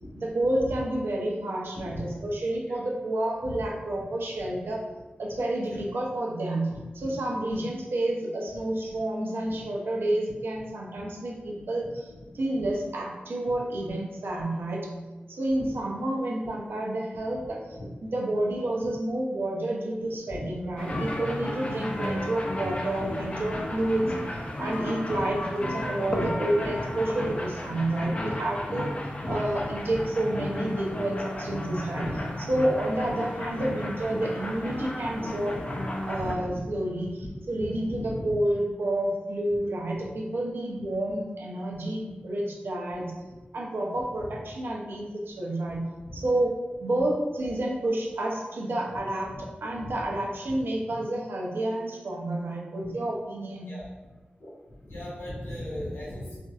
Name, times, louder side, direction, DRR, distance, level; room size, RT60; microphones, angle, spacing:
voice 1, 0.2-4.8 5.2-6.7 6.9-12.1 12.3-14.9 15.3-17.8 18.1-24.1 24.6-28.9 29.3-32.1 32.4-35.6 36.1-43.1 43.5-45.9 46.1-46.5 46.8-53.7, right 1 dB, 80° right, -2 dB, 0.7 m, -29 dB
voice 2, 1.7-2.1 2.7-2.8 3.4-3.5 4.4-4.5 5.7-5.8 6.7-7.1 7.5-7.6 9.5-9.6 11.0-11.1 11.4-11.5 15.6-15.7 17.1-17.2 17.7-17.9 20.0-20.5 20.8-21.0 23.8-23.9 24.3-24.4 26.2-26.3 29.3-29.4 29.9-30.1 32.0-32.2 36.2-36.7 37.9-38.3 42.9-43.0 43.3-43.4 44.1-44.3 46.0-46.2 49.3-49.4 49.8-49.9 52.8-52.9 53.7-53.9 54.4-54.5 54.8-56.4, left 1 dB, 80° left, -7 dB, 1.5 m, -39 dB
sound 1, 20.8-36.3, left 1 dB, 30° left, 0.5 m, -33 dB
4.3 x 2.6 x 2.4 m, 1.2 s
wide cardioid pair, 105°, 4 cm